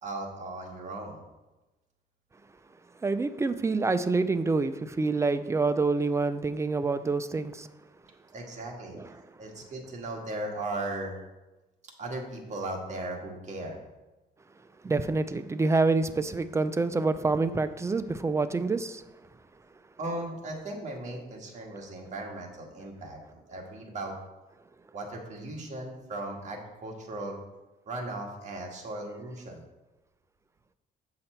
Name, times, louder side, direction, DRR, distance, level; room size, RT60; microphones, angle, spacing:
voice 1, 0.0-1.2 8.3-11.2 12.0-13.8 20.0-24.1 24.9-27.4 27.9-29.6, right 2 dB, 40° right, 0 dB, 1.6 m, -37 dB
voice 2, 3.0-7.7 8.9-9.1 14.8-19.0, right 3 dB, 15° right, 11 dB, 0.3 m, -27 dB
7.8 x 5.7 x 4.4 m, 1.1 s
cardioid pair, 130°, 18 cm